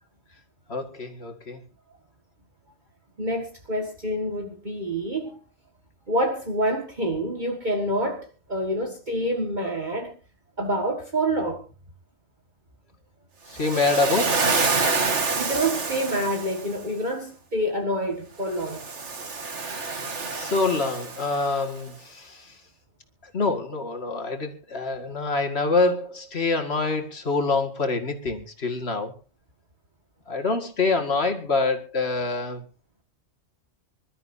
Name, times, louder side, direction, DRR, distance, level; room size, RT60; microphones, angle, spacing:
voice 1, 0.7-1.6 13.5-14.4 19.5-19.9 20.3-22.6 23.2-29.1 30.3-32.6, left 3 dB, 55° left, 4 dB, 2.4 m, -26 dB
voice 2, 3.2-5.4 6.1-10.2 10.6-11.6 15.3-18.9, right 1 dB, 40° right, 2 dB, 2.0 m, -27 dB
Waves surf, 13.5-16.8 18.5-21.6, right 4 dB, 65° right, 2.0 m, -27 dB
26.0 x 13.0 x 2.8 m, 0.34 s
omnidirectional pair, 1.3 m